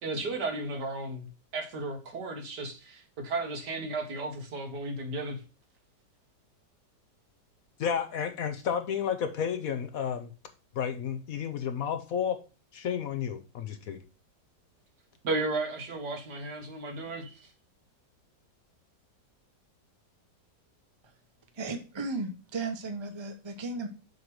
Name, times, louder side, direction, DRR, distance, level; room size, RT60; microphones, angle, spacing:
voice 1, 0.0-1.3 1.5-5.4 15.2-17.5, right 2 dB, 70° right, 3 dB, 2.0 m, -34 dB
voice 2, 7.8-10.3 10.7-12.4 12.7-14.0, left 8 dB, 65° left, 8 dB, 1.0 m, -31 dB
voice 3, 21.5-23.9, right 3 dB, 45° right, 6 dB, 0.3 m, -35 dB
7.2 x 3.1 x 6.1 m, 0.32 s
omnidirectional pair, 1.9 m